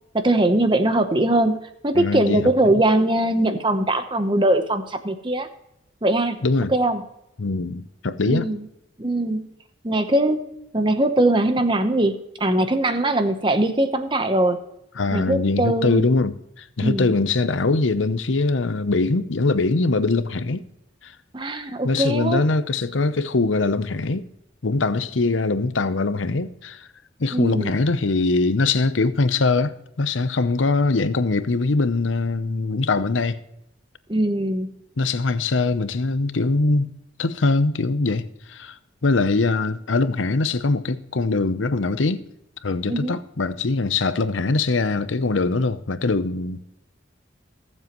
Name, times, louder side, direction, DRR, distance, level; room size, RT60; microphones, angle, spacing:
voice 1, 0.1-1.6 1.8-5.5 6.0-6.4 6.7-7.0 8.3-8.7 9.0-9.5 9.8-10.4 10.7-14.6 15.1-16.1 16.8-17.1 21.3-22.4 27.3-27.7 34.1-34.7 42.9-43.2, right 1 dB, 25° right, 0.9 m, -21 dB
voice 2, 1.9-2.8 6.4-6.7 7.4-8.5 15.0-20.6 21.0-21.1 21.8-24.2 24.6-26.9 27.2-33.4 35.0-36.9 37.2-38.8 39.0-42.2 42.6-46.6, left 3 dB, 85° left, 0.7 m, -22 dB
20.0 x 7.5 x 3.1 m
head